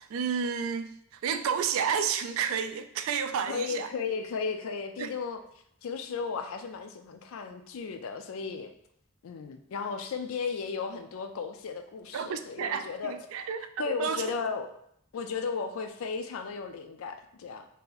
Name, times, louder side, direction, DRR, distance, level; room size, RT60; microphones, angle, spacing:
voice 1, 0.0-3.9 5.0-5.1 12.1-13.7 14.0-14.2, right 7 dB, 70° right, 10 dB, 0.3 m, -31 dB
voice 2, 3.5-5.4 5.8-8.7 9.2-13.2 13.8-14.7 15.1-17.7, left 5 dB, 70° left, 7 dB, 0.4 m, -35 dB
2.8 x 2.5 x 3.8 m, 0.71 s
head